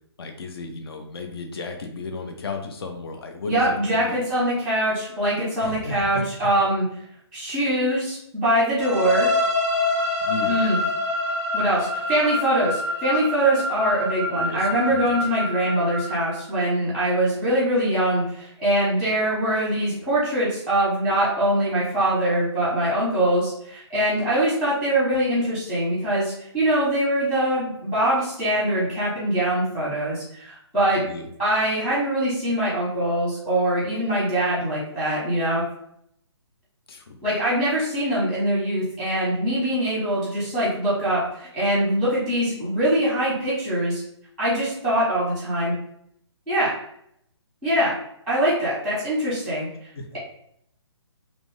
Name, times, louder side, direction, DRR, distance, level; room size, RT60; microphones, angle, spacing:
voice 1, 0.2-4.1 5.6-6.2 7.6-7.7 10.2-10.6 14.3-15.3 31.0-31.3 36.9-37.2 49.9-50.1, left 3 dB, 55° left, 4 dB, 0.6 m, -34 dB
voice 2, 3.5-6.8 7.3-9.3 10.5-10.8 11.5-31.0 31.4-35.6 37.2-44.0 44.4-45.7 46.5-46.7 47.6-47.9 48.3-49.7, right 1 dB, ahead, -8 dB, 0.9 m, -23 dB
sound 1, 8.8-16.6, left 2 dB, 25° left, 0.8 m, -26 dB
2.7 x 2.5 x 3.1 m, 0.70 s
hypercardioid pair, 150°, 15 cm